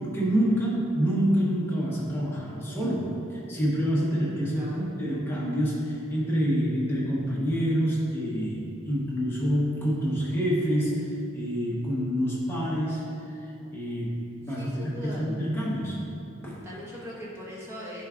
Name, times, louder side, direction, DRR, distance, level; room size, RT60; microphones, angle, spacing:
voice 1, 0.0-16.0 16.4-16.7, equal, 10° left, -6 dB, 1.0 m, -27 dB
voice 2, 4.5-4.8 14.5-15.2 16.6-18.0, equal, 10° right, -7 dB, 1.2 m, -40 dB
10.0 x 4.8 x 2.5 m, 2.5 s
head